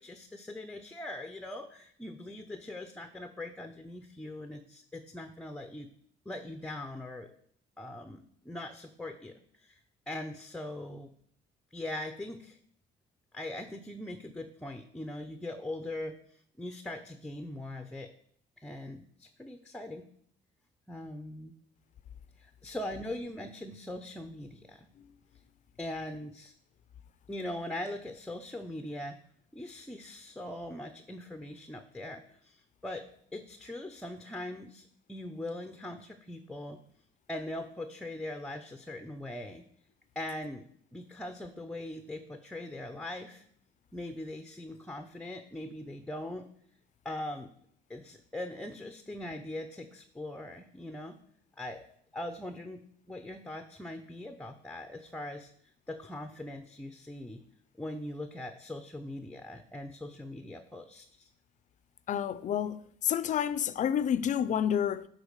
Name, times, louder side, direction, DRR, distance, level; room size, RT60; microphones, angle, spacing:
voice 1, 0.0-5.9 6.3-7.3 7.8-9.8 10.1-11.1 11.7-12.6 13.3-16.2 16.6-18.1 18.6-20.1 20.9-21.5 22.4-24.9 25.8-26.5 27.3-29.2 29.5-33.0 33.3-36.8 37.3-39.6 40.2-40.6 40.9-43.4 43.9-46.4 47.0-47.5 47.9-51.2 51.6-51.8 52.1-52.8 53.1-55.5 55.9-57.4 57.8-61.3, left 1 dB, 5° left, 0.7 m, -41 dB
voice 2, 62.1-65.1, left 9 dB, 45° left, 0.5 m, -29 dB
10.5 x 4.0 x 6.6 m
cardioid pair, 110°, 17 cm